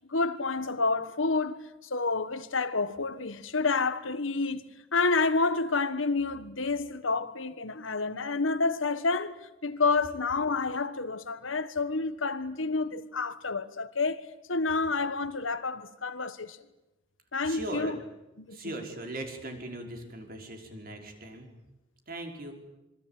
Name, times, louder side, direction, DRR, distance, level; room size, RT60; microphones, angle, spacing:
voice 1, 0.1-4.6 4.9-9.3 9.6-14.2 14.5-16.6 17.3-18.0 18.4-18.8, left 3 dB, 90° left, 1.5 m, -29 dB
voice 2, 17.4-17.9 18.5-21.5 22.1-22.5, right 1 dB, 50° right, 5.2 m, -39 dB
27.0 x 23.5 x 9.0 m
head